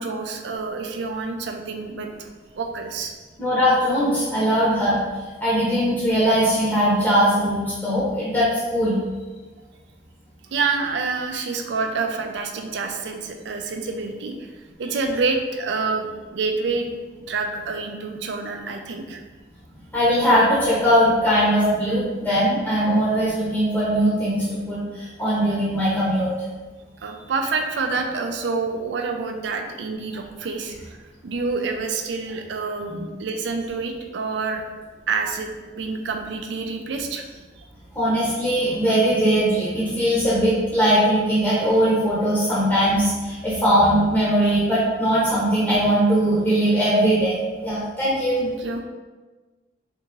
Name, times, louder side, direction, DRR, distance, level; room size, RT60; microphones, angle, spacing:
voice 1, 0.0-2.3 2.6-3.1 10.5-14.5 14.8-16.9 17.3-19.2 27.0-31.0 31.2-34.6 35.1-35.5 35.7-37.2 37.6-37.7 48.4-48.8, right 4 dB, 70° right, 4 dB, 0.4 m, -27 dB
voice 2, 3.4-5.0 5.4-9.0 19.9-26.3 32.9-33.0 37.9-47.3 47.6-48.4, equal, 10° left, -10 dB, 0.8 m, -20 dB
3.4 x 2.8 x 2.9 m, 1.3 s
head